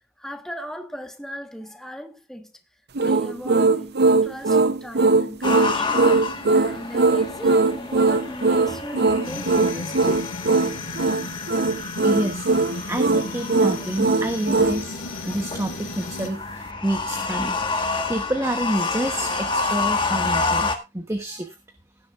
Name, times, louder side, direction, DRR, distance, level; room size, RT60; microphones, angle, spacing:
voice 1, 0.2-2.5 3.0-4.0 4.2-6.1 6.5-10.2 12.8-12.9 15.2-15.5, equal, ahead, 1.3 m, -38 dB
sound 1, 3.0-14.8, right 3 dB, 50° right, 0.8 m, -20 dB
sound 2, 5.4-20.8, left 4 dB, 25° left, 1.5 m, -29 dB
sound 3, 9.2-16.3, left 3 dB, 65° left, 2.2 m, -35 dB
voice 2, 12.0-12.5 12.9-14.9 15.2-17.6 18.1-20.7 20.9-21.5, right 1 dB, 15° right, 1.1 m, -28 dB
16.5 x 10.5 x 2.5 m
head